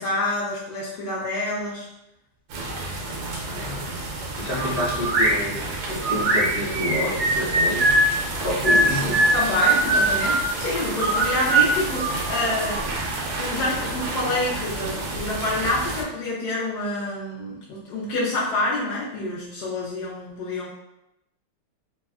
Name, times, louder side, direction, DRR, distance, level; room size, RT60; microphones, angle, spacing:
voice 1, 0.0-1.9 8.6-12.9 13.4-20.7, left 2 dB, 75° left, -6 dB, 0.9 m, -27 dB
sound 1, 2.5-16.0, right 2 dB, 75° right, 1.3 m, -31 dB
voice 2, 3.4-9.3, equal, 55° left, -7 dB, 1.4 m, -29 dB
sound 2, 4.6-5.4 6.0-8.1 8.6-10.5 11.0-12.8, right 2 dB, 40° right, 0.7 m, -21 dB
3.5 x 2.1 x 2.2 m, 0.85 s
omnidirectional pair, 2.3 m